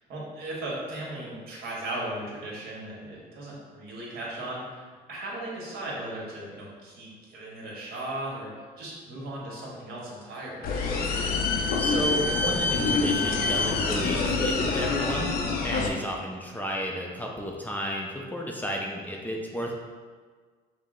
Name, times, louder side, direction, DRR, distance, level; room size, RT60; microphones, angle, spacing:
voice 1, 0.1-8.5 8.8-10.7, right 1 dB, 70° right, -4 dB, 1.4 m, -37 dB
sound 1, 10.6-15.9, left 3 dB, 60° left, 0.6 m, -26 dB
voice 2, 11.8-15.4 15.6-19.8, left 1 dB, 10° left, -1 dB, 0.5 m, -32 dB
5.6 x 2.0 x 3.7 m, 1.5 s
cardioid pair, 110°, 17 cm